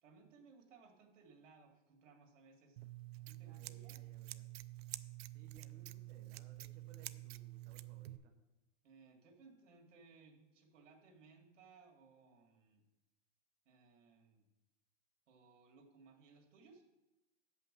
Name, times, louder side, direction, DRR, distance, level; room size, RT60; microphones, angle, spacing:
voice 1, 0.0-2.8 3.1-4.0 8.8-12.8 13.7-14.4 15.3-16.8, right 4 dB, 85° right, 2 dB, 2.2 m, -63 dB
Scissors, 2.8-8.2, right 17 dB, 55° right, 0.4 m, -49 dB
voice 2, 3.4-4.5 5.3-8.4, right 5 dB, 20° right, 2 dB, 0.7 m, -64 dB
7.4 x 5.7 x 7.4 m, 1.0 s
supercardioid pair, 165°, 37 cm